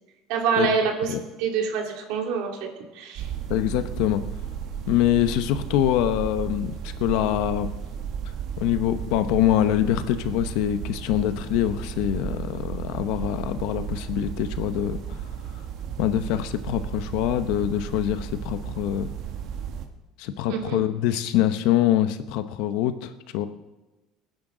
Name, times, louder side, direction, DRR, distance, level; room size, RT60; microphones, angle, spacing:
voice 1, 0.3-2.7 2.9-3.3 20.5-20.8, right 6 dB, 75° right, 2 dB, 2.7 m, -26 dB
sound 1, 3.2-19.9, right 8 dB, 45° right, 1.4 m, -34 dB
voice 2, 3.5-4.2 4.9-7.7 8.6-15.2 16.0-19.1 20.2-23.5, left 12 dB, 70° left, 11 dB, 0.9 m, -24 dB
25.5 x 10.5 x 3.9 m, 1.1 s
cardioid pair, 175°, 0 cm